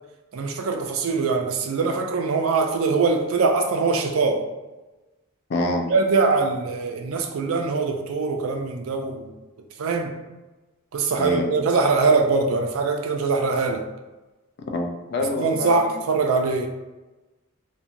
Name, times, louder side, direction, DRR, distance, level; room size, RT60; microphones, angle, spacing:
voice 1, 0.3-4.4 5.9-9.3 9.8-10.1 10.9-13.8 15.4-16.7, right 4 dB, 75° right, 4 dB, 0.4 m, -22 dB
voice 2, 5.5-5.9 11.2-11.5 14.7-16.0, left 2 dB, 50° left, 2 dB, 0.4 m, -26 dB
2.7 x 2.1 x 2.5 m, 1.1 s
head